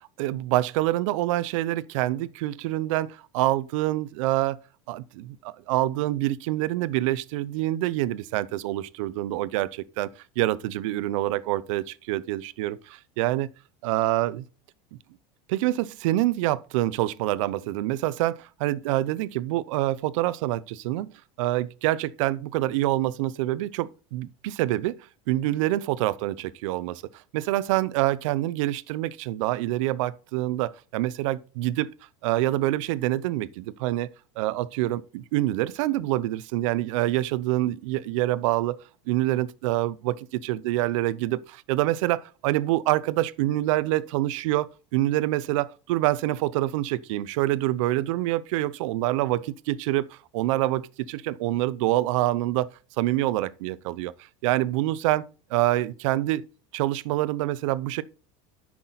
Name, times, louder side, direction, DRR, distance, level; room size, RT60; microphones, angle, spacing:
voice 1, 0.2-4.6 4.9-10.1 10.4-13.5 13.8-14.4 15.5-21.1 21.4-25.0 25.3-27.0 27.3-31.9 32.2-52.7 53.0-54.1 54.4-55.2 55.5-56.5 56.7-58.0, right 16 dB, 75° right, 0.6 m, -26 dB
10.0 x 6.0 x 4.0 m
supercardioid pair, 140°, 16 cm